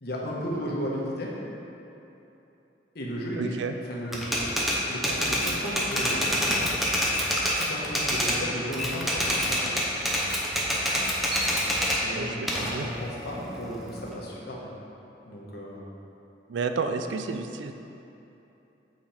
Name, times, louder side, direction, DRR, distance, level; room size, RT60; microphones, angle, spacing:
voice 1, 0.0-1.3 2.9-3.5 3.9-4.6 4.9-6.7 7.5-9.8 11.9-12.3 12.7-14.7 15.2-15.9, equal, 60° left, -4 dB, 1.2 m, -34 dB
voice 2, 3.4-3.7 12.1-12.9 16.5-17.7, right 4 dB, 80° right, 7 dB, 0.4 m, -31 dB
Typewriter, 4.1-8.4 8.7-12.0 12.5-14.1, equal, ahead, 0.7 m, -26 dB
7.7 x 4.1 x 4.3 m, 2.9 s
head